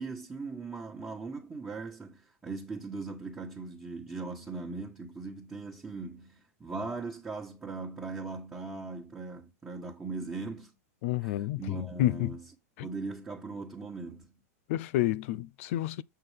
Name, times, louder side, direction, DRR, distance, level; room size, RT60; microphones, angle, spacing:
voice 1, 0.0-10.7 11.2-12.5 12.8-14.4, right 3 dB, 10° right, 1.7 m, -39 dB
voice 2, 11.0-12.4 12.8-12.9 14.7-16.0, left 14 dB, 55° left, 0.7 m, -30 dB
7.9 x 6.3 x 3.6 m
supercardioid pair, 140°, 8 cm